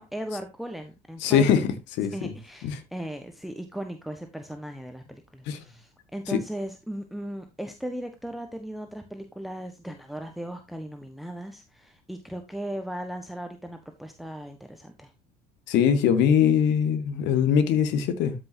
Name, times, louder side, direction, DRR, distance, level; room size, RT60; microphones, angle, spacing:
voice 1, 0.0-1.6 2.1-15.1, right 1 dB, ahead, 1.4 m, -37 dB
voice 2, 1.2-1.7 2.0-2.3 2.6-2.8 5.5-5.6 15.7-18.3, left 8 dB, 60° left, 1.7 m, -22 dB
13.0 x 6.1 x 2.8 m
hypercardioid pair, 65°, 21 cm